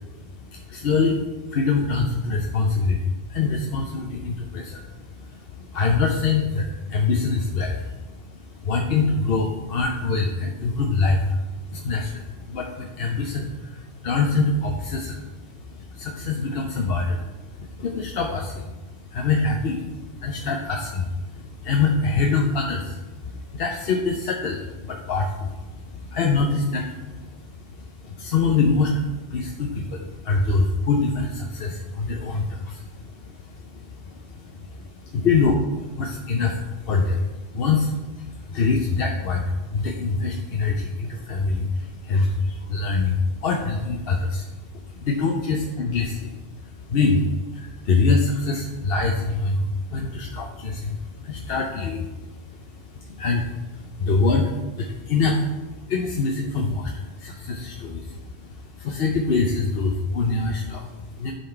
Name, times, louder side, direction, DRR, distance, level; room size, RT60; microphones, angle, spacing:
voice 1, 0.0-61.3, left 4 dB, 70° left, 1 dB, 0.9 m, -25 dB
11.0 x 4.2 x 4.4 m, 1.1 s
omnidirectional pair, 1.0 m